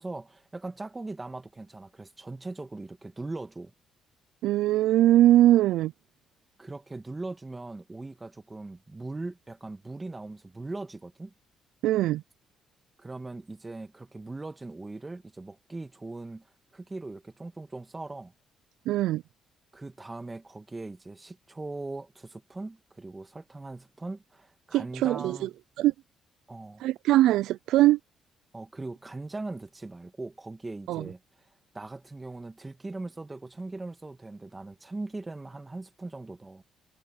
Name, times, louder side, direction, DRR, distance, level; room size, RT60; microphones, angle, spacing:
voice 1, 0.0-3.7 6.6-11.3 13.0-18.3 19.7-25.5 26.5-26.8 28.5-31.5 31.7-36.6, right 2 dB, 20° right, 2.2 m, -40 dB
voice 2, 4.4-5.9 11.8-12.2 18.9-19.2 24.7-25.5 25.8-25.9 26.8-28.0 30.9-31.1, right 14 dB, 90° right, 0.3 m, -21 dB
cardioid pair, 90°, 0 cm